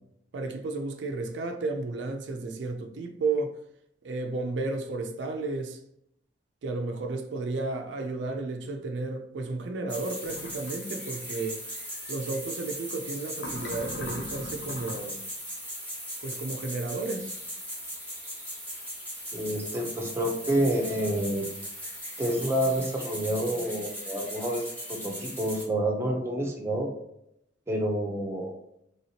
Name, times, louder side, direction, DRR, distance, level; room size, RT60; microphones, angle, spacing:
voice 1, 0.3-3.6 4.0-5.8 6.6-11.6 12.1-15.2 16.2-17.3, right 3 dB, 80° right, 0.4 m, -33 dB
sound 1, 9.9-25.6, equal, 10° left, 1.0 m, -38 dB
sound 2, 10.2-10.7 13.3-15.1, left 1 dB, 75° left, 0.7 m, -40 dB
voice 2, 19.3-21.5 22.2-26.9 27.7-28.5, right 1 dB, 15° right, 0.6 m, -28 dB
3.1 x 2.8 x 2.8 m
head